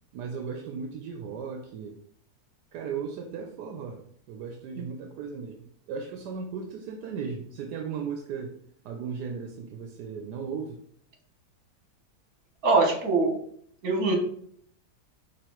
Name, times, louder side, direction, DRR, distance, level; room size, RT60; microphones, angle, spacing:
voice 1, 0.1-2.0 2.7-4.0 4.3-5.6 5.9-8.6 8.8-10.8, right 6 dB, 80° right, 3 dB, 1.2 m, -36 dB
voice 2, 12.6-13.3 13.8-14.1, right 3 dB, 60° right, 0 dB, 1.6 m, -22 dB
4.9 x 3.5 x 3.0 m, 0.64 s
omnidirectional pair, 1.8 m